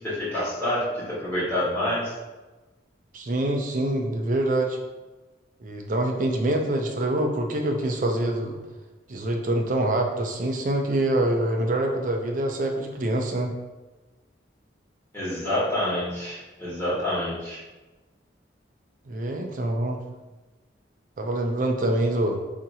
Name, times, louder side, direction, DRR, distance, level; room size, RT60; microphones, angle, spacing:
voice 1, 0.0-2.1 15.1-17.6, left 1 dB, 10° left, -11 dB, 1.3 m, -27 dB
voice 2, 3.1-4.8 5.6-8.6 9.1-13.5 19.1-20.0 21.2-22.4, right 1 dB, 45° right, 3 dB, 0.4 m, -25 dB
2.8 x 2.5 x 4.1 m, 1.2 s
head